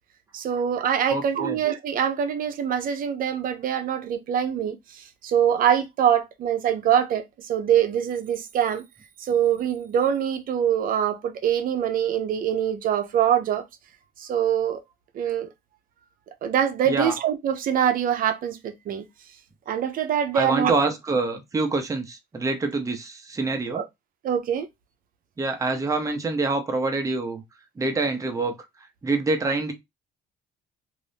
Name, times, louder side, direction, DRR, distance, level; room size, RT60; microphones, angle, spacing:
voice 1, 0.3-8.8 9.2-13.6 14.2-14.8 15.1-15.5 16.4-19.1 19.7-20.7 23.7-23.8 24.2-24.7, right 9 dB, 55° right, 0.7 m, -24 dB
voice 2, 1.1-1.6 16.9-17.1 20.3-23.8 25.4-27.4 27.8-28.6 29.0-29.7, right 3 dB, 20° right, 0.7 m, -26 dB
2.6 x 2.6 x 3.3 m
cardioid pair, 110°, 17 cm